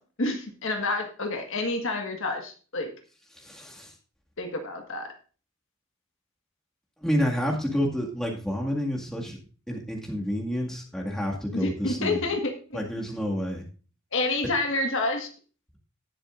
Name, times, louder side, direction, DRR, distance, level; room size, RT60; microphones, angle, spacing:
voice 1, 0.2-2.9 4.4-5.1 11.5-12.8 14.1-15.3, left 2 dB, 60° left, 4 dB, 1.6 m, -28 dB
voice 2, 3.4-3.9 7.0-9.4 9.7-12.3 12.7-13.6, equal, ahead, -2 dB, 2.0 m, -29 dB
18.5 x 6.9 x 2.5 m, 0.38 s
head